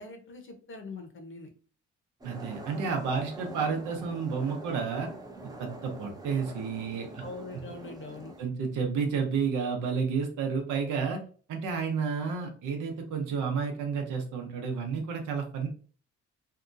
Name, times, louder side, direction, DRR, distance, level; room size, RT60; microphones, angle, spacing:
voice 1, 0.0-1.5 7.2-8.3, left 3 dB, 40° left, 5 dB, 0.8 m, -43 dB
sound 1, 2.2-8.4, right 1 dB, 15° right, 0.5 m, -44 dB
voice 2, 2.2-5.1 5.6-7.2 8.4-11.2 11.5-15.7, right 5 dB, 85° right, 3 dB, 0.8 m, -31 dB
2.8 x 2.3 x 2.5 m, 0.40 s
cardioid pair, 90°, 30 cm